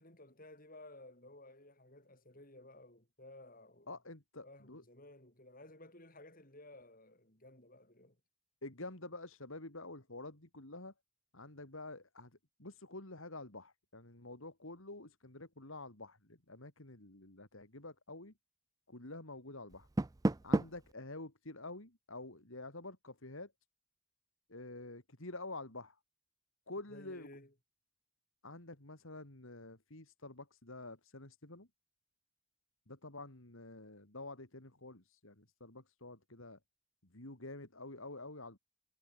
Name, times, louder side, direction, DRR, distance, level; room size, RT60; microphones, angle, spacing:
voice 1, 0.0-3.9 4.4-8.2 26.9-27.5, left 1 dB, 40° left, 6.8 m, -56 dB
voice 2, 3.9-4.8 8.6-10.9 11.3-12.3 12.6-18.3 18.9-19.9 20.4-23.5 24.5-26.0 26.7-27.3 28.4-31.7 32.9-36.6 37.1-38.6, left 2 dB, 65° left, 3.2 m, -48 dB
Door, 19.7-20.9, right 2 dB, 15° right, 0.4 m, -33 dB
head